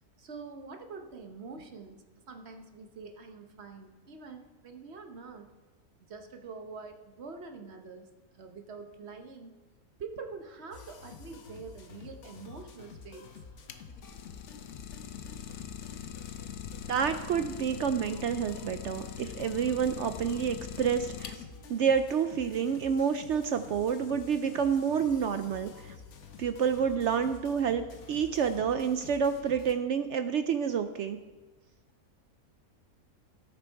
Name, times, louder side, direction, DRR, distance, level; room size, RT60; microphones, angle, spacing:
voice 1, 0.2-5.5 6.0-8.1 8.3-9.5 10.0-13.3, right 4 dB, 50° right, 5 dB, 1.1 m, -45 dB
sound 1, 10.7-29.7, left 5 dB, 55° left, 1.1 m, -49 dB
Idling, 13.7-21.7, left 9 dB, 80° left, 1.2 m, -42 dB
voice 2, 16.9-21.3 21.7-25.9 26.4-31.2, right 7 dB, 70° right, 9 dB, 0.7 m, -29 dB
16.5 x 6.9 x 4.6 m, 1.2 s
omnidirectional pair, 1.6 m